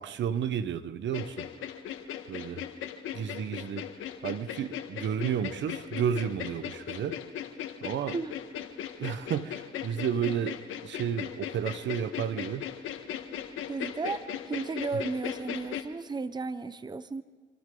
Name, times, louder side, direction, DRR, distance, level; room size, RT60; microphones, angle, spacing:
voice 1, 0.0-1.5 2.3-2.6 3.1-3.9 4.2-7.2 7.8-8.2 9.0-12.7, right 8 dB, 70° right, 1.0 m, -32 dB
sound 1, 1.1-15.8, left 10 dB, 85° left, 1.6 m, -38 dB
voice 2, 13.7-14.2 14.5-17.2, right 4 dB, 20° right, 0.8 m, -34 dB
28.0 x 26.0 x 3.9 m
cardioid pair, 90°, 20 cm